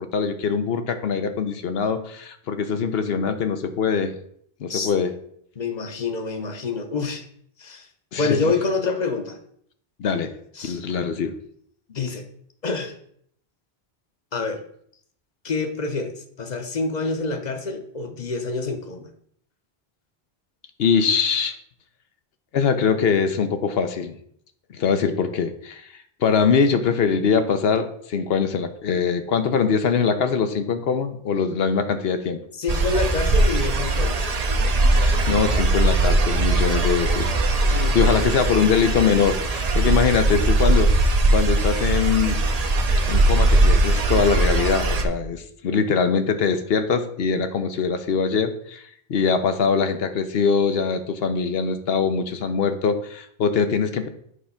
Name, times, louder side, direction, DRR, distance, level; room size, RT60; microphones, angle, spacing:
voice 1, 0.0-4.1 4.6-5.1 8.1-8.4 10.0-10.3 10.6-11.3 20.8-21.5 22.5-24.2 24.7-25.8 26.2-32.4 35.0-37.3 37.7-40.9 41.3-42.4 43.1-48.8 49.1-54.1, left 6 dB, 75° left, 9 dB, 1.0 m, -22 dB
voice 2, 5.6-7.2 7.6-7.9 8.2-9.4 10.6-10.8 11.9-12.2 12.6-12.9 14.3-14.6 15.4-16.1 16.4-19.1 32.5-34.3 36.7-36.8 37.7-38.3, left 3 dB, 45° left, 6 dB, 1.0 m, -27 dB
sound 1, 32.7-45.0, right 2 dB, 45° right, 0.7 m, -20 dB
8.1 x 3.4 x 5.6 m, 0.66 s
omnidirectional pair, 1.0 m